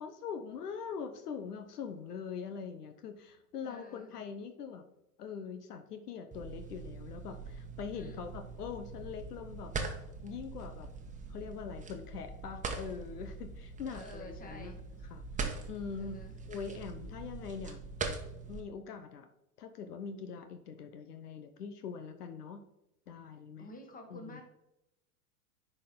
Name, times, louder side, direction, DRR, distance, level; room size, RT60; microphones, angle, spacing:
voice 1, 0.0-4.8 5.2-9.7 10.2-10.9 11.3-14.7 15.1-15.2 15.7-16.2 16.5-17.8 18.5-19.3 19.6-22.6 23.1-23.7 24.1-24.4, left 6 dB, 75° left, 7 dB, 1.0 m, -43 dB
voice 2, 3.6-4.1 7.9-8.3 13.9-14.8 16.0-16.3 23.6-24.4, left 1 dB, 20° left, 3 dB, 1.6 m, -49 dB
sound 1, 6.3-18.6, right 4 dB, 15° right, 1.1 m, -42 dB
10.0 x 4.5 x 3.8 m, 0.89 s
hypercardioid pair, 95°, 47 cm